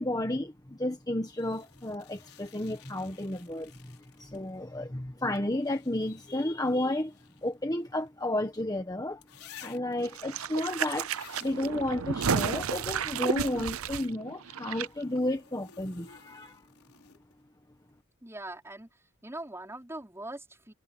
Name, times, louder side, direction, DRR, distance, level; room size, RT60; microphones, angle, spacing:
voice 1, 0.0-7.1 7.4-9.2 9.6-11.1 11.4-16.6, left 1 dB, 15° left, 1.4 m, -32 dB
sound 1, 1.4-4.6 5.3-8.5 9.2-10.1 11.0-11.7 14.7-17.4 19.3-19.4, left 9 dB, 85° left, 4.8 m, -55 dB
sound 2, 10.0-14.9 15.1-15.2, right 6 dB, 80° right, 0.7 m, -32 dB
voice 2, 18.2-18.9 19.2-20.7, right 1 dB, 10° right, 4.8 m, -41 dB
head